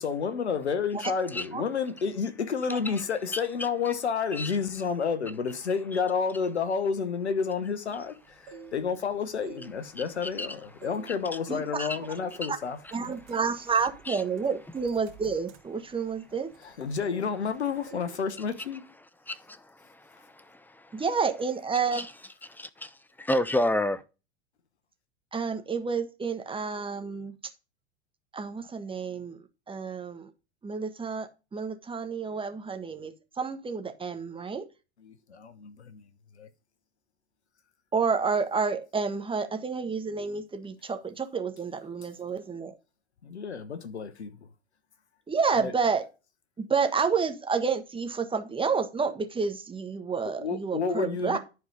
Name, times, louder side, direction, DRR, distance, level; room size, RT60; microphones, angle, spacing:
voice 1, 0.0-12.8 16.6-18.9 35.0-36.0 36.4-36.5 43.2-44.3 45.5-45.7 50.4-51.4, left 6 dB, 85° left, 1.2 m, -30 dB
voice 2, 1.0-1.5 3.3-3.4 4.3-4.5 5.9-6.0 10.2-10.5 11.8-12.0 12.4-12.5 14.1-14.2 19.3-21.0 21.9-22.1 23.3-24.0, left 1 dB, 5° left, 0.8 m, -30 dB
sound 1, 8.2-9.0 9.4-10.4 10.8-11.2 11.5-11.8 12.4-12.5 12.9-16.7 17.0-17.6 17.9-18.2 18.4-18.7, right 6 dB, 70° right, 2.7 m, -49 dB
voice 3, 11.5-11.9 12.9-16.5 20.9-22.0 25.3-27.3 28.3-29.4 29.7-30.3 30.6-34.6 37.9-42.7 45.3-46.0 46.6-51.4, right 5 dB, 15° right, 1.5 m, -29 dB
11.0 x 4.7 x 5.3 m
figure-of-eight pair, 85°, 32 cm